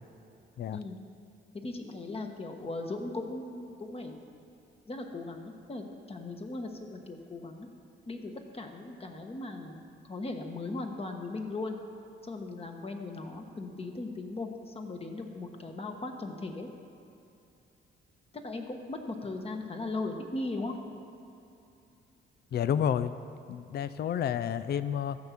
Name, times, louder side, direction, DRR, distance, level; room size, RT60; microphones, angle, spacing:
voice 1, 1.5-4.2 4.9-7.7 8.1-11.8 12.2-16.7 18.3-21.0, left 2 dB, 30° left, 4 dB, 1.4 m, -38 dB
voice 2, 22.5-23.1 23.5-25.2, left 9 dB, 55° left, 14 dB, 0.5 m, -30 dB
14.0 x 5.7 x 7.5 m, 2.7 s
cardioid pair, 90°, 20 cm